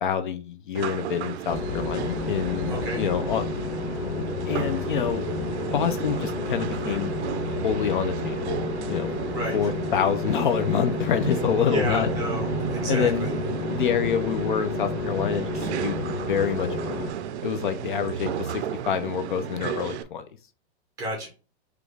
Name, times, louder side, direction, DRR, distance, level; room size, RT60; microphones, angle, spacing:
voice 1, 0.0-3.4 4.5-5.3 5.7-8.6 8.9-9.1 9.5-12.1 12.9-13.3 13.8-16.0 16.3-16.9 17.4-20.2, left 8 dB, 50° left, 8 dB, 0.4 m, -27 dB
sound 1, 0.7-20.0, right 10 dB, 80° right, 0.6 m, -33 dB
sound 2, 1.5-17.1, left 4 dB, 80° left, 0.9 m, -32 dB
voice 2, 2.7-3.0 9.3-9.6 11.7-13.3 21.0-21.3, right 1 dB, 10° right, 0 dB, 0.5 m, -31 dB
sound 3, 4.0-18.6, left 2 dB, 10° left, 0.9 m, -40 dB
4.9 x 2.4 x 3.2 m, 0.35 s
supercardioid pair, 170°, 33 cm